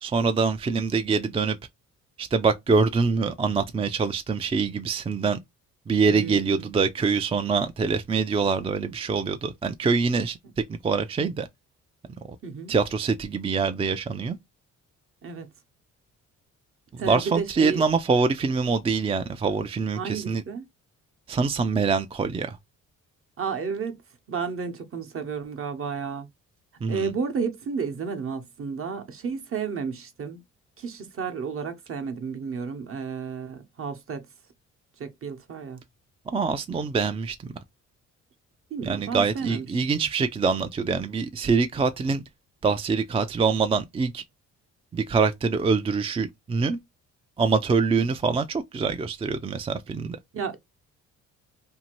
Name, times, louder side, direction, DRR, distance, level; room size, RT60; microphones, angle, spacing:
voice 1, 0.0-1.6 2.2-5.4 5.9-11.5 12.7-14.4 17.1-20.4 21.3-22.6 26.8-27.1 36.3-37.4 38.8-42.2 42.6-44.2 44.9-46.8 47.4-50.2, right 4 dB, 20° right, 0.3 m, -24 dB
voice 2, 6.1-6.7 12.4-12.7 15.2-15.5 17.0-17.8 19.9-20.6 23.4-24.0 24.3-26.3 26.9-30.4 30.8-34.2 35.0-35.8 38.7-40.1 50.3-50.6, right 5 dB, 45° right, 0.9 m, -32 dB
2.7 x 2.5 x 2.9 m
cardioid pair, 90°, 30 cm